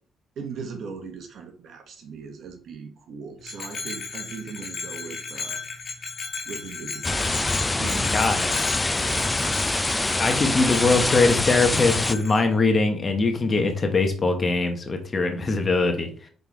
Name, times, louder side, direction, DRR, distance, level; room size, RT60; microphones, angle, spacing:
voice 1, 0.4-5.6 6.5-7.5 7.8-8.6 9.0-10.2, right 5 dB, 65° right, 5 dB, 1.4 m, -39 dB
Bell, 3.4-12.4, left 5 dB, 55° left, 2.7 m, -35 dB
sound 1, 7.0-12.2, left 2 dB, 15° left, 0.5 m, -25 dB
voice 2, 8.1-8.5 10.2-16.1, left 3 dB, 35° left, 5 dB, 1.3 m, -22 dB
5.4 x 4.2 x 4.7 m, 0.43 s
cardioid pair, 80°, 0 cm